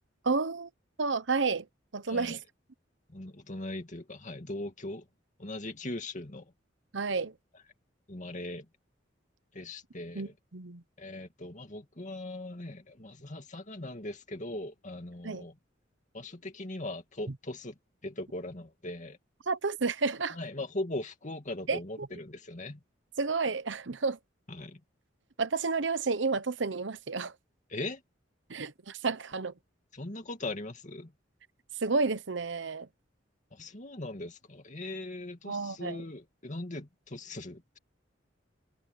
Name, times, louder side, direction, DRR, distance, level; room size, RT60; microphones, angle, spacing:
voice 1, 0.2-0.7 1.0-1.7 1.9-2.4 6.9-7.3 10.1-10.8 15.2-15.4 19.5-20.4 21.7-21.8 23.2-24.2 25.4-27.3 28.5-29.5 31.8-32.9 35.4-36.0, right 4 dB, 70° right, 1.0 m, -30 dB
voice 2, 2.1-2.4 3.1-5.1 5.4-6.5 8.1-8.7 9.5-10.3 11.0-15.6 16.1-17.8 18.0-19.2 20.3-22.8 24.5-24.8 27.7-28.0 29.9-31.1 33.5-37.8, left 2 dB, 40° left, 2.4 m, -40 dB
head